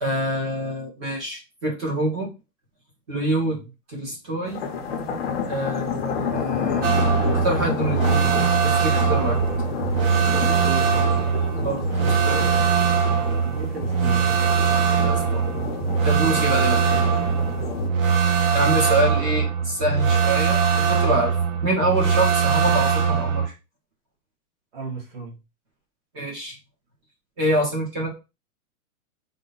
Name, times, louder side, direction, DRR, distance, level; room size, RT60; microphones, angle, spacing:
voice 1, 0.0-2.3 3.1-3.6 3.9-4.6 5.5-7.0 7.3-9.4 11.6-12.4 14.7-15.5 16.0-16.8 18.5-21.4 21.6-23.5 26.1-26.6 27.4-28.1, right 1 dB, 20° right, 0.7 m, -26 dB
sound 1, 4.5-17.9, left 5 dB, 40° left, 0.6 m, -30 dB
sound 2, 6.8-23.5, right 6 dB, 60° right, 1.0 m, -21 dB
voice 2, 10.7-11.0 13.2-14.3 24.7-25.4, right 4 dB, 40° right, 1.3 m, -35 dB
3.8 x 2.2 x 3.8 m
hypercardioid pair, 180°, 45 cm